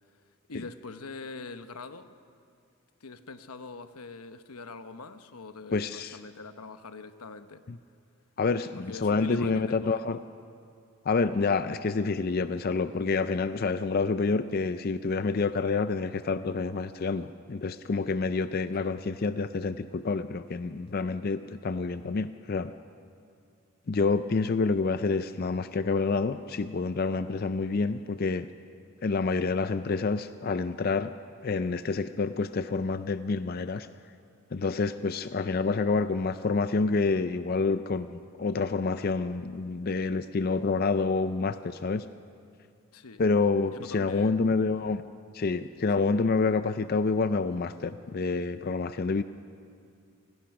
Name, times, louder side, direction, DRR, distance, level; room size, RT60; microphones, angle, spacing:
voice 1, 0.5-2.1 3.0-7.6 8.9-10.0 18.8-18.9 42.9-43.2 43.7-44.5 45.9-46.2, left 4 dB, 90° left, 10 dB, 1.0 m, -43 dB
voice 2, 5.7-6.2 7.7-7.8 8.4-10.2 11.1-22.7 23.9-28.5 29.0-31.1 31.4-33.9 34.5-42.1 43.2-45.1 45.3-49.2, left 4 dB, 45° left, 11 dB, 0.4 m, -28 dB
26.0 x 17.5 x 5.9 m, 2.3 s
head